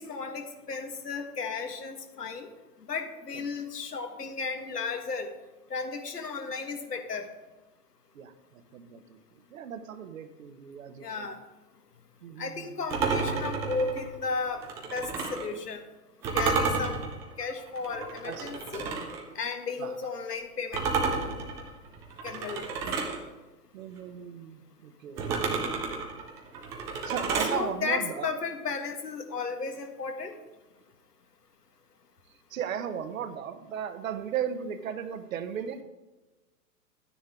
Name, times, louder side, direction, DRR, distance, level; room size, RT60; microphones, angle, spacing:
voice 1, 0.0-2.5 2.9-5.3 5.7-7.3 11.0-11.4 12.4-14.6 14.9-15.8 16.3-17.0 17.4-18.9 19.3-21.2 22.2-22.8 27.4-30.4, left 4 dB, 75° left, 5 dB, 1.7 m, -34 dB
voice 2, 8.7-9.2 9.5-11.3 12.2-12.7 16.5-16.6 18.3-18.5 19.8-19.9 22.8-23.1 23.7-25.4 27.0-28.3 32.5-35.8, right 8 dB, 55° right, 9 dB, 1.2 m, -36 dB
sound 1, 12.9-15.5 16.2-19.2 20.7-23.2 25.2-27.6, right 4 dB, 5° right, 0.3 m, -31 dB
12.5 x 9.6 x 3.6 m, 1.1 s
figure-of-eight pair, 105°, 47 cm